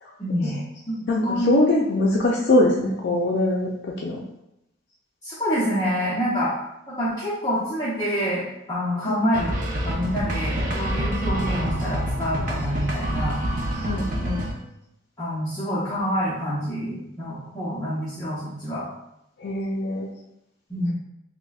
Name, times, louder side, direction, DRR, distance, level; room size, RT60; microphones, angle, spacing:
voice 1, 0.2-0.6 0.9-1.6 5.2-6.6 6.9-13.4 14.2-14.4 15.2-18.8 20.7-20.9, equal, 20° left, -9 dB, 0.7 m, -27 dB
voice 2, 1.1-4.2 9.1-9.2 13.8-14.0 19.4-20.1, left 2 dB, 55° left, -2 dB, 0.4 m, -22 dB
sound 1, 9.3-14.5, right 1 dB, 45° right, 0.6 m, -27 dB
5.9 x 2.1 x 2.3 m, 0.85 s
head